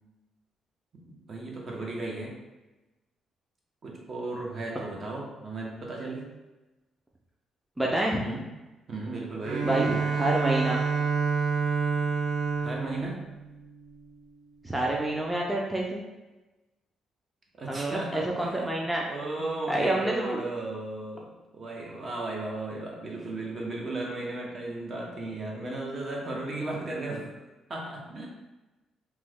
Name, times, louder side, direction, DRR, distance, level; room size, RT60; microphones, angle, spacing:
voice 1, 0.9-2.4 3.8-6.3 8.2-8.4 8.9-10.0 12.6-13.2 17.6-27.3 27.7-28.3, right 2 dB, 45° right, -1 dB, 0.8 m, -35 dB
voice 2, 7.8-8.2 9.6-10.8 14.6-16.0 17.7-19.0 19.7-20.4, right 1 dB, 10° right, -3 dB, 0.4 m, -28 dB
Bowed string instrument, 9.4-14.2, right 5 dB, 85° right, 0.4 m, -28 dB
3.0 x 2.1 x 3.5 m, 1.1 s
cardioid pair, 90°, 0 cm